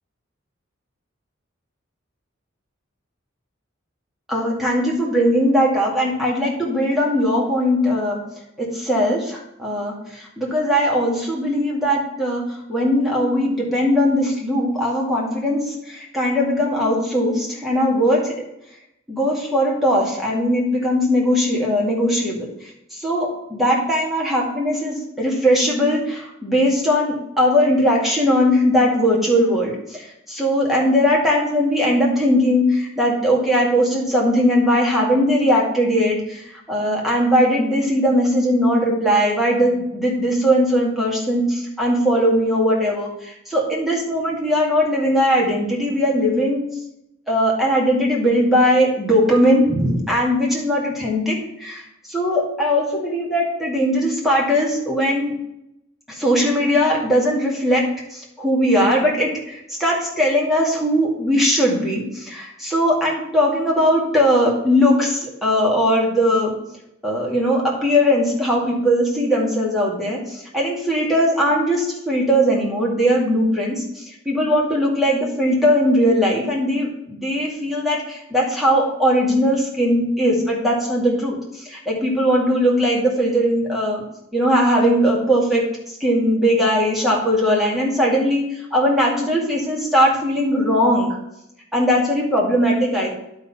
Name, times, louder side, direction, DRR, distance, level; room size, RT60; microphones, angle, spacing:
voice 1, 4.3-8.2 8.6-18.3 19.1-46.6 47.3-51.8 52.1-55.3 56.1-57.8 58.1-66.6 67.0-84.0 84.3-91.2 91.7-93.1, equal, ahead, -4 dB, 2.2 m, -19 dB
11.0 x 4.1 x 5.5 m, 0.82 s
head